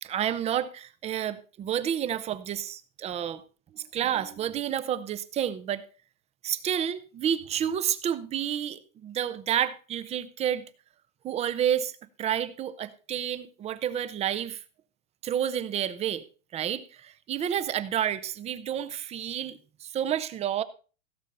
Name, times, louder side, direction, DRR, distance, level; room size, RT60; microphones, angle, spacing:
voice 1, 0.0-3.4 3.7-5.9 6.4-10.6 11.2-11.9 12.2-14.6 15.2-16.2 16.5-20.6, right 10 dB, 15° right, 14 dB, 0.6 m, -30 dB
16.5 x 7.4 x 5.4 m, 0.36 s
supercardioid pair, 150°, 40 cm